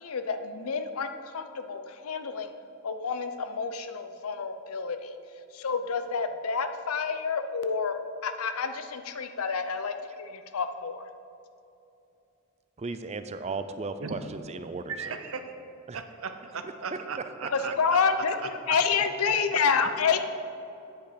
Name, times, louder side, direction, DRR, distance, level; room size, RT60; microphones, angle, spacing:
voice 1, 0.0-2.5 2.8-5.1 5.5-11.0 17.5-20.2, left 5 dB, 85° left, 9 dB, 0.6 m, -29 dB
voice 2, 12.8-14.9 15.9-16.0, right 3 dB, 30° right, 10 dB, 0.4 m, -35 dB
voice 3, 14.9-15.5 15.9-18.0 18.4-18.5, right 5 dB, 75° right, 7 dB, 0.8 m, -37 dB
9.0 x 8.1 x 5.0 m, 2.8 s
head